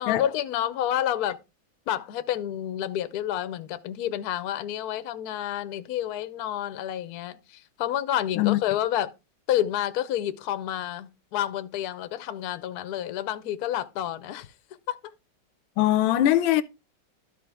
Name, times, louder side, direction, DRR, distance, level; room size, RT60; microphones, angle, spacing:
voice 1, 0.0-1.4 1.9-9.1 9.5-14.5 14.9-15.0, left 11 dB, 65° left, 1.0 m, -29 dB
voice 2, 15.8-16.6, left 13 dB, 85° left, 1.4 m, -21 dB
12.5 x 4.7 x 3.4 m
omnidirectional pair, 2.2 m